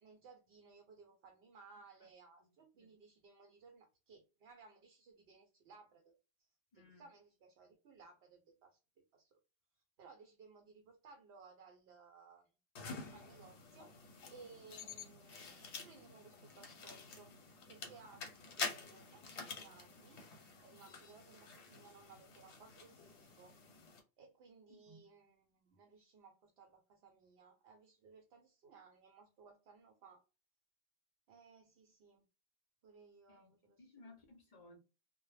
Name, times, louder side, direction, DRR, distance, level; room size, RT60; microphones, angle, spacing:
voice 1, 0.0-6.5 6.7-9.3 9.7-12.5 13.0-13.9 14.3-17.4 17.7-20.2 20.6-23.6 24.2-30.2 31.3-32.3 32.8-33.9, right 4 dB, 70° right, 0.8 m, -61 dB
voice 2, 2.4-2.9 6.7-7.0 24.7-25.0 33.3-33.5 33.8-34.8, left 2 dB, 45° left, 0.6 m, -61 dB
sound 1, 12.8-24.0, left 4 dB, 85° left, 1.0 m, -48 dB
2.1 x 2.0 x 3.1 m
omnidirectional pair, 1.1 m